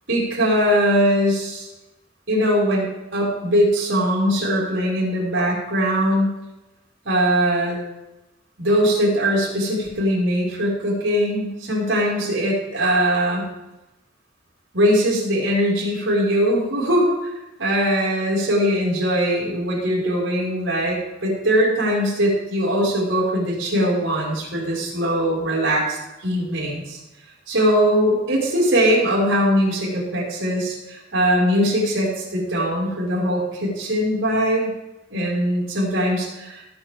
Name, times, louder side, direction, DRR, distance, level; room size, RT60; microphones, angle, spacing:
voice 1, 0.1-1.7 2.3-6.3 7.1-7.8 8.6-13.4 14.7-17.3 17.6-27.0 27.5-34.7 35.1-36.6, equal, 75° right, -5 dB, 5.3 m, -21 dB
18.0 x 9.0 x 3.6 m, 0.98 s
head